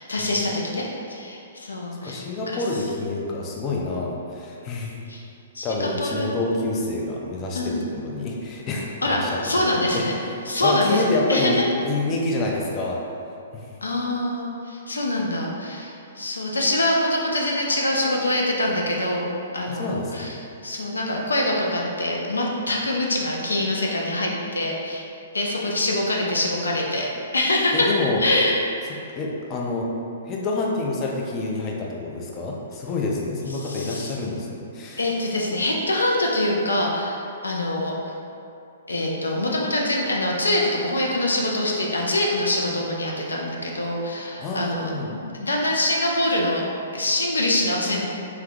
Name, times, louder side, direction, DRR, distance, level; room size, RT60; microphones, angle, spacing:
voice 1, 0.0-2.6 5.1-5.2 5.5-6.3 7.5-7.9 9.0-10.1 10.5-11.7 13.8-19.3 19.5-25.1 25.3-27.1 27.3-27.9 28.2-28.6 33.5-34.1 35.0-38.1 38.9-46.6 46.9-48.0, left 1 dB, 90° left, -1 dB, 0.4 m, -24 dB
voice 2, 2.0-4.9 5.6-10.1 10.6-13.0 13.5-13.7 19.7-20.3 27.7-28.2 29.2-29.9 30.3-35.0 44.4-45.1, left 2 dB, 30° left, -2 dB, 0.5 m, -27 dB
3.4 x 2.9 x 2.3 m, 2.6 s
hypercardioid pair, 125°, 0 cm